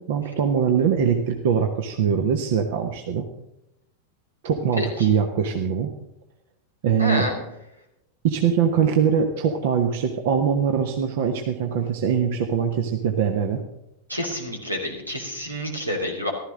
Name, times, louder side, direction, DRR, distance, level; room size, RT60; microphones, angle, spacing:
voice 1, 0.0-3.2 4.4-5.9 6.8-7.2 8.2-13.6, right 7 dB, 50° right, 5 dB, 1.1 m, -22 dB
voice 2, 4.8-5.1 7.0-7.4 14.1-16.3, left 1 dB, 85° right, 1 dB, 3.0 m, -28 dB
14.5 x 13.0 x 3.8 m, 0.86 s
figure-of-eight pair, 90°, 0 cm